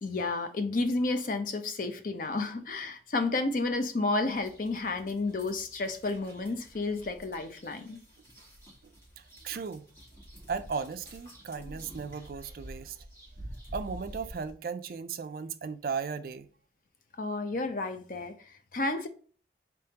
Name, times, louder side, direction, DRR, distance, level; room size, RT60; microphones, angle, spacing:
voice 1, 0.0-8.0 17.2-19.1, left 3 dB, 50° left, 0.5 m, -31 dB
sound 1, 4.3-14.5, equal, 15° left, 1.4 m, -49 dB
voice 2, 9.2-9.8 10.5-13.0 13.7-16.5, right 5 dB, 55° right, 0.4 m, -36 dB
5.1 x 3.6 x 2.8 m
head